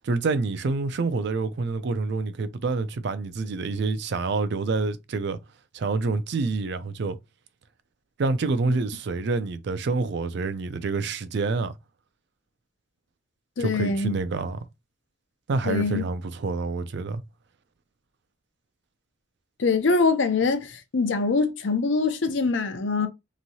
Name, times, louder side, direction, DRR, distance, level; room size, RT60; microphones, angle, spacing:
voice 1, 0.0-5.4 5.7-7.2 8.2-11.7 13.6-14.7 15.5-17.2, right 3 dB, 65° right, 0.4 m, -27 dB
voice 2, 13.6-14.2 15.7-16.0 19.6-23.1, left 4 dB, 75° left, 0.6 m, -23 dB
3.0 x 2.7 x 2.7 m
head